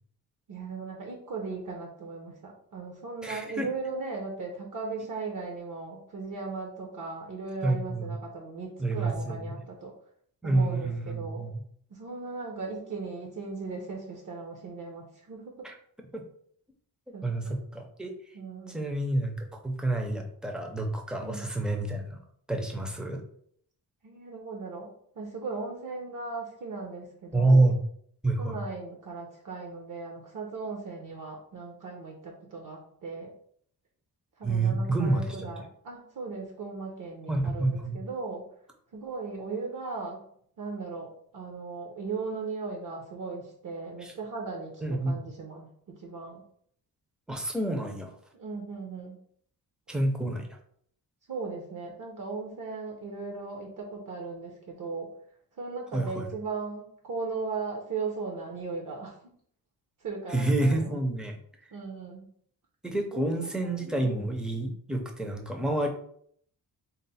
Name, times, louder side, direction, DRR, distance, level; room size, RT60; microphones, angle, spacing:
voice 1, 0.5-9.9 10.4-11.4 11.9-15.7 17.1-17.5 18.3-18.8 21.2-21.4 24.0-27.7 28.4-33.3 34.4-38.5 38.9-40.3 40.6-46.4 48.3-49.2 51.3-55.1 55.5-59.3 60.0-61.0 61.7-62.3 63.1-63.3 63.6-64.3, right 4 dB, 55° right, 0 dB, 0.7 m, -37 dB
voice 2, 3.2-3.7 7.6-8.2 8.8-9.5 10.4-11.6 15.6-15.7 16.1-16.2 17.2-18.1 18.7-22.2 22.5-23.2 27.3-27.8 28.2-28.6 34.4-35.5 37.3-38.0 44.0-44.1 44.8-45.1 47.3-48.1 49.9-50.5 55.9-56.2 60.3-61.4 62.8-65.9, right 2 dB, ahead, 2 dB, 0.4 m, -28 dB
4.0 x 2.0 x 3.9 m, 0.64 s
wide cardioid pair, 155°, 38 cm